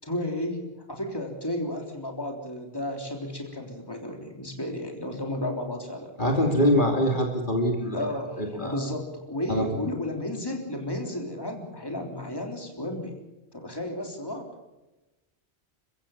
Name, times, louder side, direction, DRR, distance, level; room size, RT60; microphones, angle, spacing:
voice 1, 0.0-6.1 7.9-13.2 13.5-14.5, left 1 dB, 20° left, 2 dB, 3.6 m, -33 dB
voice 2, 6.2-8.1 8.4-8.8 9.5-9.7, equal, 50° left, 2 dB, 3.1 m, -24 dB
29.0 x 15.5 x 7.3 m, 1.0 s
omnidirectional pair, 1.1 m